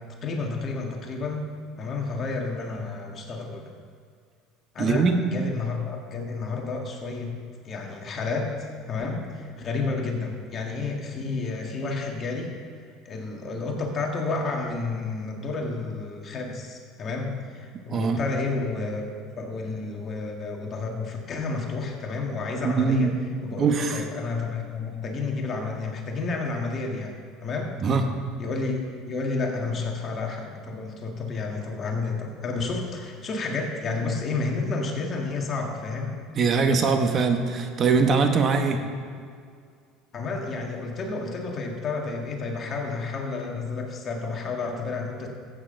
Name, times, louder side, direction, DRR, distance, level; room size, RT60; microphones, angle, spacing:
voice 1, 0.2-1.4 1.8-3.7 4.7-7.4 7.6-8.5 8.9-12.5 13.1-19.0 19.4-23.1 23.4-27.7 28.4-28.8 29.0-36.1 40.1-45.3, left 3 dB, 40° left, 1 dB, 1.7 m, -30 dB
voice 2, 4.8-5.2 17.9-18.2 22.6-23.1 23.6-24.0 27.8-28.1 36.3-38.8, right 4 dB, 40° right, 6 dB, 1.2 m, -22 dB
14.5 x 8.8 x 3.9 m, 2.1 s
supercardioid pair, 105°, 0 cm